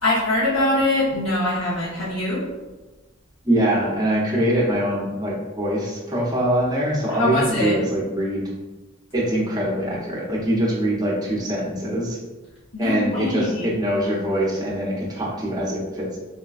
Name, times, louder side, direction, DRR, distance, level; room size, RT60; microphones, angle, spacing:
voice 1, 0.0-2.4 7.1-7.7 12.7-13.7, left 2 dB, 75° left, -9 dB, 0.8 m, -23 dB
voice 2, 3.4-8.4 9.1-12.2 12.8-16.2, right 1 dB, 20° right, -5 dB, 0.7 m, -23 dB
4.1 x 2.2 x 2.3 m, 1.2 s
head